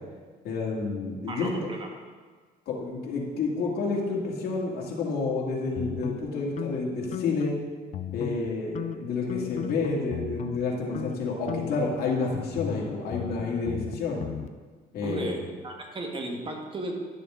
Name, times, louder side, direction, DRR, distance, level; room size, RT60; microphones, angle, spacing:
voice 1, 0.4-1.5 2.7-7.6 8.1-14.2 14.9-15.4, left 3 dB, 65° left, -3 dB, 2.4 m, -29 dB
voice 2, 1.3-1.9 15.0-15.4 15.6-16.9, right 2 dB, 30° right, 2 dB, 1.5 m, -35 dB
sound 1, 5.8-7.6 7.9-8.5 8.8-10.6 10.9-11.2 11.5-14.5, left 9 dB, 45° left, 0.4 m, -36 dB
11.5 x 6.9 x 3.8 m, 1.5 s
cardioid pair, 110°, 17 cm